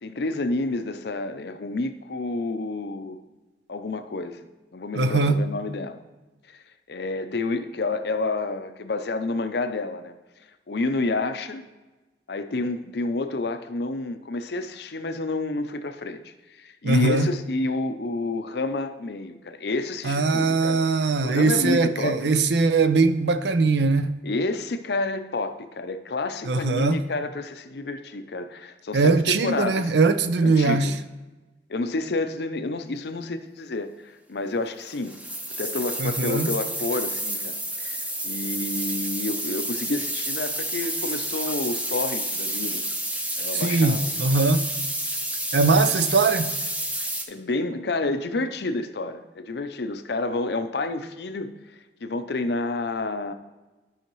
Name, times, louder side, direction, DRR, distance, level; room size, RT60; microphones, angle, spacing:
voice 1, 0.0-3.2 3.7-4.4 4.7-6.0 6.5-10.1 10.7-11.6 12.3-20.8 21.2-22.2 24.2-29.9 30.4-30.9 31.7-35.2 35.6-42.8 43.4-44.1 47.3-51.5 52.0-53.3, left 2 dB, 65° left, 0.6 m, -29 dB
voice 2, 4.9-5.4 16.8-17.3 20.0-24.1 26.4-27.0 28.9-30.9 36.0-36.5 43.5-44.7 45.5-46.5, right 3 dB, 70° right, 0.5 m, -21 dB
sound 1, 34.8-47.2, right 1 dB, 10° right, 0.6 m, -30 dB
11.5 x 5.7 x 3.1 m
head